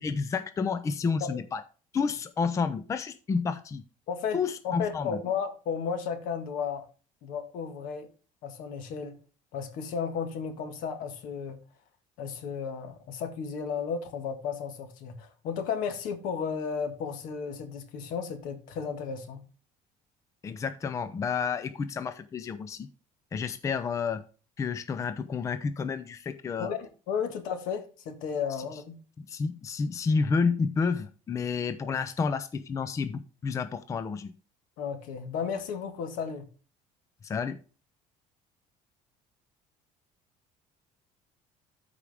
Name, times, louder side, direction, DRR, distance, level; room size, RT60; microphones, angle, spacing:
voice 1, 0.0-1.6 1.9-3.8 4.3-5.2 20.4-22.9 23.3-24.2 24.6-26.7 29.2-34.3 37.2-37.6, left 5 dB, 20° left, 0.5 m, -30 dB
voice 2, 4.1-4.4 4.6-6.9 7.2-8.1 8.4-9.1 9.5-11.6 12.2-19.4 26.6-29.0 34.8-36.4, left 6 dB, 75° left, 1.7 m, -34 dB
13.0 x 4.9 x 3.5 m
cardioid pair, 145°, 14 cm